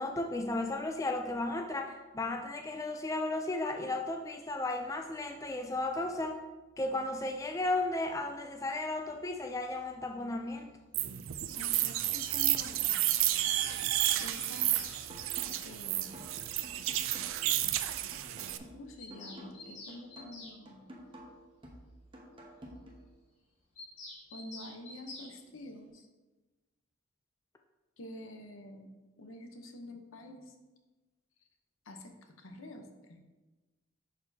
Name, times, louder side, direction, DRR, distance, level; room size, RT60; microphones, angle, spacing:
voice 1, 0.0-6.4 6.8-10.7, left 2 dB, 15° left, 4 dB, 0.3 m, -34 dB
sound 1, 10.9-18.6, right 13 dB, 75° right, 0.4 m, -31 dB
voice 2, 11.5-12.9 14.2-14.9 15.6-16.2 18.7-20.9 24.3-26.1 28.0-28.9 29.2-30.5 31.9-33.2, left 1 dB, 80° left, 4 dB, 0.8 m, -47 dB
Bird vocalization bird call bird song, 12.8-15.0 16.4-16.5 16.8-16.9 17.1-17.2 17.5-17.6 17.8-17.9 18.2-18.3 18.6-20.6 23.8-25.3, left 2 dB, 65° left, 1.8 m, -49 dB
sound 2, 15.1-23.1, equal, 25° right, 0.9 m, -52 dB
10.5 x 4.3 x 2.7 m, 1.2 s
head